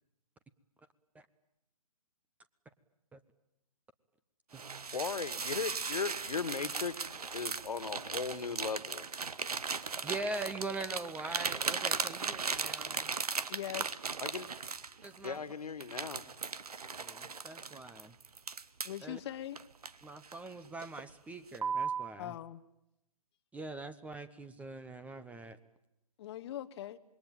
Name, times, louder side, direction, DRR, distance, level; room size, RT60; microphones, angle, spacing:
sound 1, 4.5-15.3 15.8-19.0 19.6-20.5 20.8-21.1 21.5-22.1, right 5 dB, 80° right, 1.3 m, -37 dB
voice 1, 4.9-9.1 14.2-14.5 15.2-16.2, left 5 dB, 80° left, 14 dB, 2.0 m, -37 dB
voice 2, 10.0-13.1 15.0-15.4 17.0-18.1 19.0-19.2 20.0-22.4 23.5-25.6, right 2 dB, 5° right, 13 dB, 1.0 m, -42 dB
voice 3, 13.5-14.0 18.8-19.6 22.2-22.6 26.2-27.0, left 12 dB, 45° left, 9 dB, 1.1 m, -41 dB
27.0 x 21.5 x 9.0 m, 0.83 s
hypercardioid pair, 135°, 19 cm